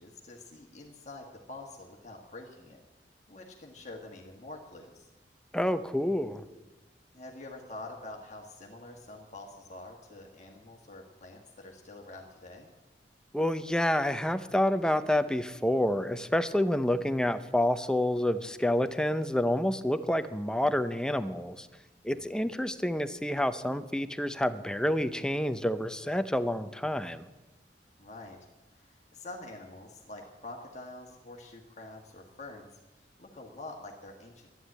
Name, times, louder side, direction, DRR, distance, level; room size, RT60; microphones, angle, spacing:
voice 1, 0.0-2.8 3.3-5.1 7.1-12.7 22.1-22.5 28.0-28.4 28.7-34.5, left 2 dB, 40° left, 1 dB, 1.6 m, -46 dB
voice 2, 5.5-6.4 13.3-21.7 22.0-27.3, left 1 dB, 5° left, 10 dB, 0.6 m, -28 dB
11.5 x 11.5 x 8.7 m, 1.1 s
head